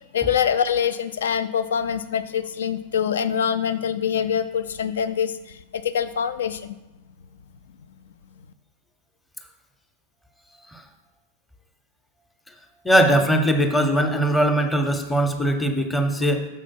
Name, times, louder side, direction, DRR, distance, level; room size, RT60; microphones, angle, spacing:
voice 1, 0.1-6.8, left 8 dB, 65° left, 13 dB, 0.4 m, -24 dB
voice 2, 12.8-16.5, right 1 dB, 5° left, 5 dB, 0.8 m, -20 dB
6.5 x 4.9 x 5.8 m, 1.0 s
figure-of-eight pair, 90°, 0 cm